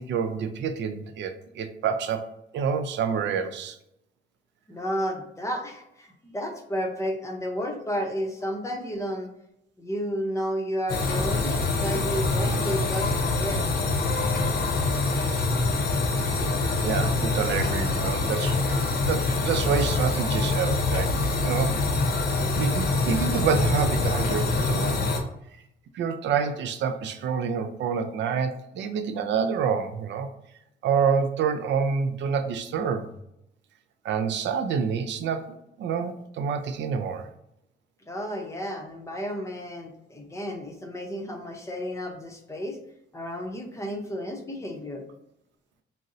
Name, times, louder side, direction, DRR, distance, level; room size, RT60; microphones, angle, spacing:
voice 1, 0.0-2.3 2.5-3.8 16.8-21.1 21.4-21.8 22.5-25.0 25.9-30.3 30.8-33.1 34.0-37.3, right 6 dB, 65° right, 8 dB, 0.4 m, -27 dB
voice 2, 4.7-9.3 9.8-13.7 38.1-42.8 43.1-45.0, equal, 15° left, 2 dB, 0.6 m, -32 dB
sound 1, 10.9-25.2, left 3 dB, 55° left, 0.7 m, -25 dB
2.6 x 2.0 x 3.6 m, 0.80 s
cardioid pair, 90°, 20 cm